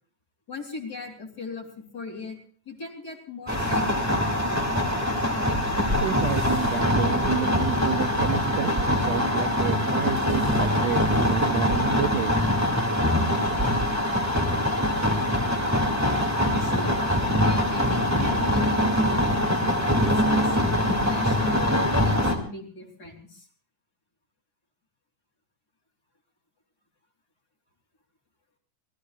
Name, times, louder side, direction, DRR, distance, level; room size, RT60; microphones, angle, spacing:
voice 1, 0.5-2.4 2.6-4.8 16.5-17.0 17.4-19.3 20.0-23.5, left 4 dB, 30° left, 1 dB, 3.3 m, -38 dB
sound 1, 3.5-22.3, left 1 dB, 5° right, 1.6 m, -23 dB
voice 2, 6.0-12.4, right 9 dB, 70° right, 6 dB, 1.8 m, -30 dB
26.0 x 19.5 x 2.4 m, 0.43 s
omnidirectional pair, 3.8 m